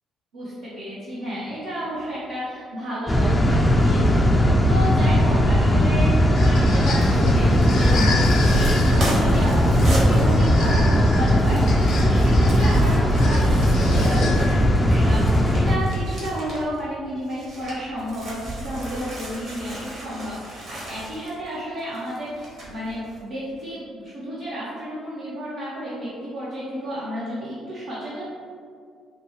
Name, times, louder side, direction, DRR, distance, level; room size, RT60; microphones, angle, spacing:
voice 1, 0.3-28.3, equal, 75° right, -11 dB, 0.9 m, -32 dB
sound 1, 3.1-15.8, equal, 20° left, 0.5 m, -18 dB
sound 2, 6.1-14.8, left 3 dB, 65° left, 0.7 m, -31 dB
sound 3, 6.9-16.8 17.2-23.2 23.6-23.7, right 1 dB, 60° right, 1.4 m, -36 dB
4.8 x 2.2 x 3.1 m, 2.2 s
hypercardioid pair, 45°, 0 cm